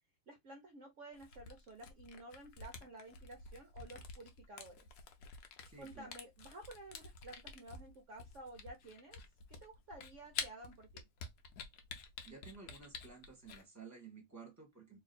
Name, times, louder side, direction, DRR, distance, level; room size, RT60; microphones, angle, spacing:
voice 1, 0.3-4.9 5.8-9.2 9.5-11.1, right 1 dB, 65° right, 0.7 m, -53 dB
Camera, 1.1-13.6, left 5 dB, 65° left, 1.0 m, -49 dB
voice 2, 5.6-6.1 12.2-15.0, right 5 dB, 10° right, 1.1 m, -54 dB
3.1 x 2.9 x 4.1 m
omnidirectional pair, 2.3 m